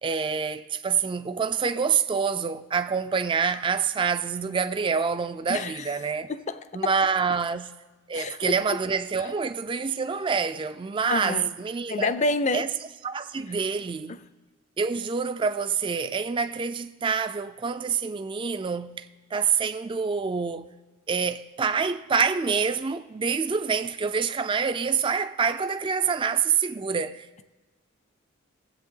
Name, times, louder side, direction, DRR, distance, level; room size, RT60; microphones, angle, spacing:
voice 1, 0.0-6.3 6.7-7.7 8.1-12.1 12.5-12.7 13.0-14.2 14.8-19.1 19.3-20.7 21.1-27.4, right 5 dB, 25° right, 0.3 m, -26 dB
voice 2, 5.5-6.0 6.3-6.9 8.1-8.8 11.1-11.5 11.9-12.7 14.1-14.2, left 3 dB, 35° left, 0.5 m, -28 dB
21.5 x 8.0 x 3.8 m
head